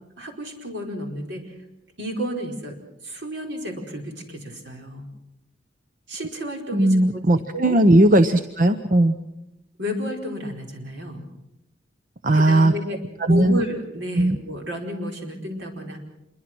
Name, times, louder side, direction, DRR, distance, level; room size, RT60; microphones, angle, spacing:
voice 1, 0.2-1.5 2.0-2.8 3.0-5.1 6.1-7.2 7.5-7.8 9.8-11.2 12.3-16.0, equal, 70° right, 2 dB, 4.9 m, -31 dB
voice 2, 6.7-9.1 12.2-12.7 13.2-13.6 14.2-14.4, right 1 dB, 45° right, 10 dB, 0.8 m, -17 dB
27.0 x 23.0 x 6.2 m, 0.89 s
head